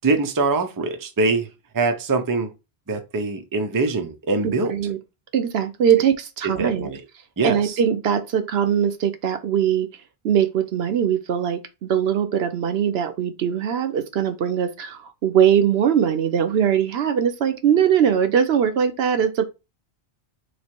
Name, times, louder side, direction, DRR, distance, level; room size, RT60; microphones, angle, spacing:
voice 1, 0.0-1.5 1.7-2.5 2.9-4.7 6.6-7.0 7.4-7.6, right 3 dB, 25° right, 0.5 m, -23 dB
voice 2, 4.4-5.0 5.3-6.9 7.4-9.9 10.2-19.5, right 8 dB, 70° right, 0.9 m, -21 dB
3.1 x 2.8 x 4.4 m
omnidirectional pair, 1.1 m